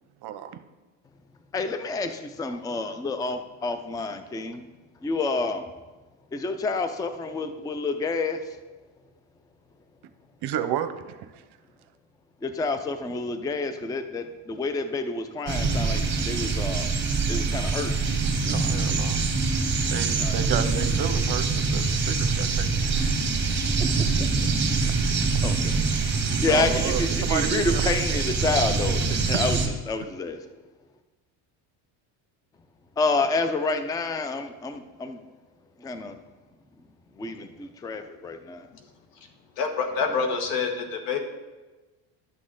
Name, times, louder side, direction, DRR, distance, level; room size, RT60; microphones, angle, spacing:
voice 1, 0.2-0.6 10.4-11.3 18.4-19.2 19.9-22.7 24.8-24.9 26.5-27.9 28.6-28.8 29.3-29.4, right 10 dB, 55° right, 10 dB, 0.8 m, -31 dB
voice 2, 1.5-4.7 5.0-5.7 6.3-8.6 12.4-17.0 17.3-17.9 20.2-20.7 23.8-24.6 25.2-25.8 26.4-30.5 33.0-35.2 35.8-36.2 37.1-38.7, left 3 dB, 10° left, 9 dB, 0.4 m, -29 dB
sound 1, 15.5-29.7, right 4 dB, 25° right, 1.6 m, -24 dB
voice 3, 39.6-41.2, left 5 dB, 85° left, 5 dB, 1.4 m, -26 dB
11.0 x 6.2 x 3.8 m, 1.2 s
cardioid pair, 110°, 48 cm